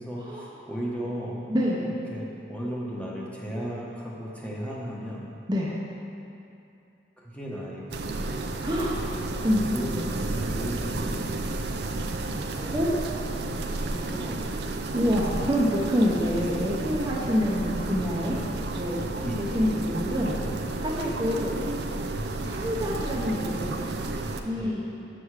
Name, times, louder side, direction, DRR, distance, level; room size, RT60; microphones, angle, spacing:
voice 1, 0.0-1.4 1.8-5.3 7.2-8.1 9.7-12.7 13.5-14.7 15.3-15.5 19.2-19.5 24.5-24.8, equal, 5° left, -4 dB, 0.9 m, -36 dB
voice 2, 1.5-1.8 5.5-5.7 8.6-9.0 9.4-9.9 12.7-12.9 14.9-18.4 18.8-19.2 19.5-21.5 22.4-23.8 24.4-24.8, equal, 25° right, -5 dB, 0.7 m, -27 dB
sound 1, 7.9-24.4, right 2 dB, 65° right, 0.5 m, -32 dB
6.9 x 6.4 x 4.8 m, 2.7 s
head